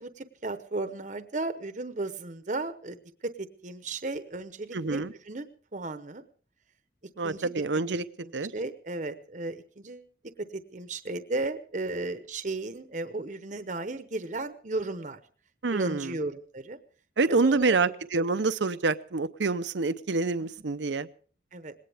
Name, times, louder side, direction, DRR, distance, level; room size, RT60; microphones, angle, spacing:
voice 1, 0.0-6.2 7.2-7.6 8.2-10.1 10.4-15.2 15.7-16.8 17.3-17.8 18.1-18.3 20.4-20.5 21.5-21.7, right 2 dB, 40° right, 0.9 m, -35 dB
voice 2, 4.7-5.1 7.2-8.0 8.3-8.5 15.6-16.1 17.2-21.1, right 3 dB, 75° right, 0.7 m, -27 dB
20.5 x 18.0 x 3.5 m
head